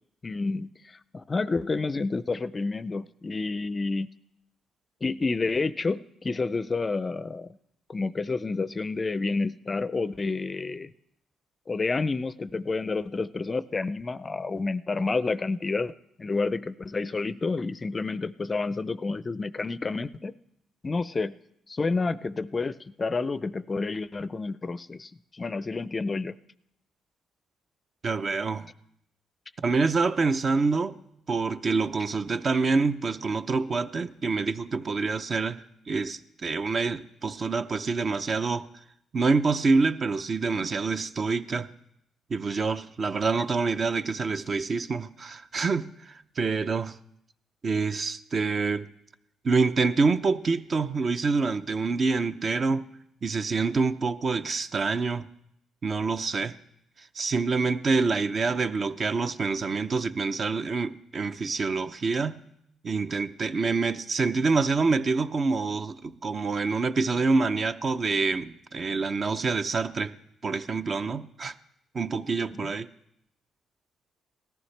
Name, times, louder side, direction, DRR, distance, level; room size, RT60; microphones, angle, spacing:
voice 1, 0.2-4.1 5.0-7.5 7.9-10.9 11.7-15.9 16.2-20.3 20.8-21.4 21.7-26.3 72.5-72.7, left 3 dB, 30° left, 0.4 m, -29 dB
voice 2, 28.0-28.7 29.6-31.0 31.3-38.7 39.1-41.7 42.3-47.0 47.6-48.9 49.4-52.8 53.2-55.3 55.8-56.6 57.0-62.4 62.8-70.1 70.4-71.5 71.9-72.9, right 4 dB, 40° right, 0.6 m, -26 dB
18.5 x 14.0 x 3.3 m
cardioid pair, 90°, 0 cm